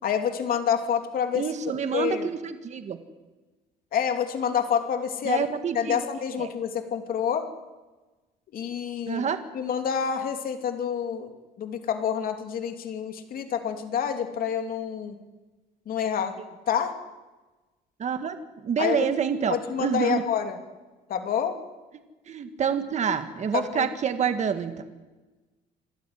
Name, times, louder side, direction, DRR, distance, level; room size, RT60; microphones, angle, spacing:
voice 1, 0.0-1.5 1.9-2.3 3.9-5.4 5.7-7.4 8.5-9.2 9.5-11.3 11.6-15.2 15.9-16.3 16.7-16.9 18.8-19.1 19.5-20.6 21.1-21.6 23.5-23.9, left 8 dB, 60° left, 6 dB, 2.9 m, -27 dB
voice 2, 1.3-3.0 5.2-6.0 6.4-6.5 9.1-9.4 18.0-18.4 18.6-20.2 22.3-24.8, right 7 dB, 45° right, 8 dB, 1.8 m, -27 dB
26.5 x 13.0 x 9.9 m, 1.2 s
cardioid pair, 110°, 17 cm